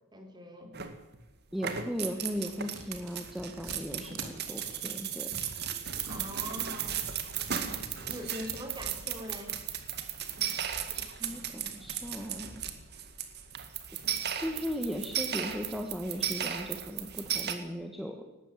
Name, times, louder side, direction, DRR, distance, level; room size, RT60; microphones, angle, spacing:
voice 1, 0.1-0.7 6.0-7.0 8.0-9.6, equal, 20° right, 4 dB, 3.7 m, -42 dB
sound 1, 0.7-1.2 1.5-17.5, right 9 dB, 45° right, 2.1 m, -36 dB
voice 2, 1.5-5.4 11.0-12.6 14.4-18.2, equal, ahead, 2 dB, 1.5 m, -37 dB
sound 2, 1.8-9.0, right 4 dB, 80° right, 3.6 m, -46 dB
19.0 x 15.0 x 9.2 m, 1.0 s
head